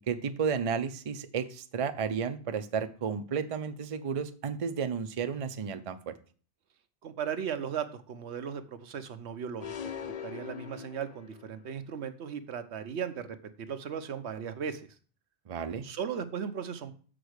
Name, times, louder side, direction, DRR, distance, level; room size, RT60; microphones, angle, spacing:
voice 1, 0.1-6.2 15.5-15.9, right 6 dB, 40° right, 9 dB, 0.5 m, -32 dB
voice 2, 7.0-14.9 15.8-16.9, right 7 dB, 85° right, 9 dB, 1.0 m, -37 dB
sound 1, 9.6-11.6, left 8 dB, 45° left, 0.5 m, -41 dB
7.0 x 5.0 x 6.4 m, 0.42 s
omnidirectional pair, 1.1 m